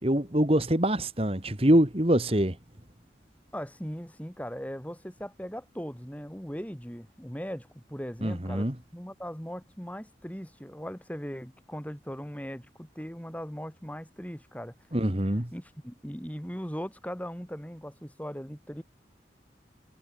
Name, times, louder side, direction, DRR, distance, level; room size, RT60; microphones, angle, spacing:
voice 1, 0.0-2.6 8.2-8.7 14.9-15.5, right 1 dB, 30° right, 2.3 m, -24 dB
voice 2, 3.5-14.8 15.5-18.8, equal, 10° left, 5.2 m, -39 dB
head